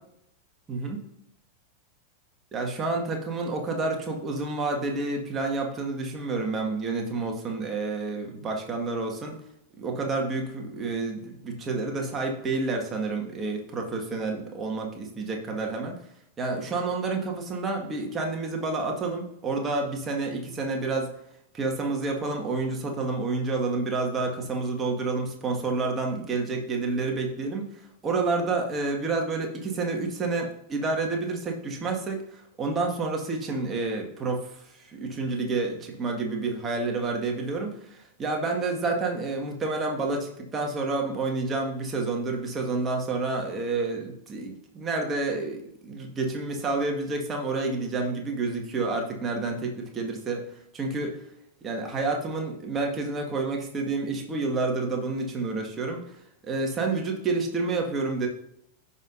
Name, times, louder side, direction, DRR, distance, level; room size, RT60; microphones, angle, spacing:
voice 1, 2.5-9.4 9.8-16.0 16.4-21.1 21.5-27.7 28.0-50.4 50.7-51.2 51.6-56.2 56.4-58.3, right 3 dB, 20° right, 1 dB, 1.8 m, -29 dB
15.0 x 5.7 x 2.7 m, 0.78 s
figure-of-eight pair, 90°, 0 cm